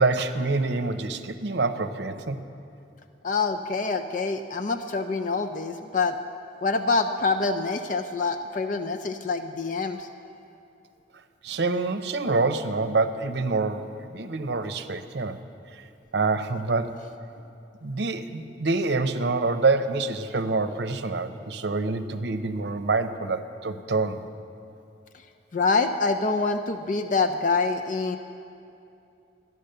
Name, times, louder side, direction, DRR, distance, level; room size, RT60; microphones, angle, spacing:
voice 1, 0.0-2.4 11.4-15.4 16.1-17.0 17.8-24.2, right 3 dB, 65° right, 8 dB, 0.7 m, -26 dB
voice 2, 3.2-6.2 6.6-10.1 25.5-28.2, left 4 dB, 45° left, 6 dB, 0.4 m, -26 dB
13.5 x 11.0 x 6.6 m, 2.7 s
head